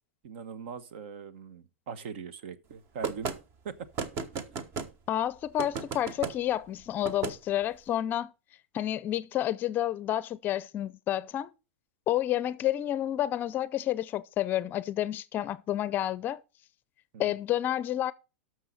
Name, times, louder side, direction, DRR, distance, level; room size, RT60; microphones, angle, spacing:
voice 1, 0.2-3.3 3.6-3.9 17.1-17.3, right 6 dB, 65° right, 1.1 m, -41 dB
sound 1, 3.0-3.4 4.0-4.9 5.6-6.3 7.0-7.4, right 5 dB, 35° right, 1.1 m, -33 dB
voice 2, 5.1-8.3 8.7-11.5 12.1-16.4 17.2-18.1, left 12 dB, 30° left, 0.5 m, -30 dB
13.0 x 6.3 x 4.1 m
supercardioid pair, 140°, 7 cm